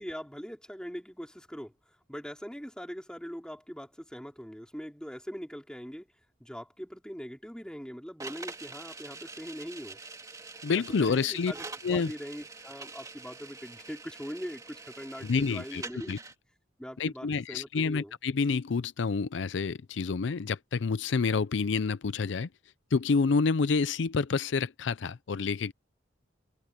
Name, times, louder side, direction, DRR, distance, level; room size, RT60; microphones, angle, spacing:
voice 1, 0.0-1.7 2.1-6.1 6.4-10.0 10.6-16.2 16.8-18.1, equal, 5° left, 4.1 m, -42 dB
sound 1, 8.2-16.3, right 3 dB, 20° right, 2.6 m, -45 dB
voice 2, 10.6-11.5 11.8-12.1 15.2-15.8 16.1-16.2 17.0-22.5 22.9-25.7, left 4 dB, 70° left, 0.5 m, -28 dB
head